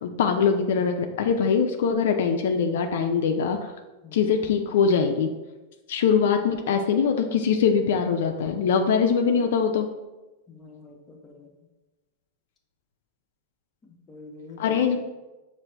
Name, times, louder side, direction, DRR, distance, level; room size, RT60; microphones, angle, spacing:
voice 1, 0.0-3.7 4.1-5.3 5.9-9.9 14.6-15.0, left 6 dB, 75° left, 5 dB, 0.3 m, -22 dB
voice 2, 4.0-4.4 10.5-11.5 14.1-15.0, left 3 dB, 25° left, 1 dB, 0.7 m, -45 dB
5.6 x 2.5 x 3.2 m, 1.1 s
hypercardioid pair, 125°, 0 cm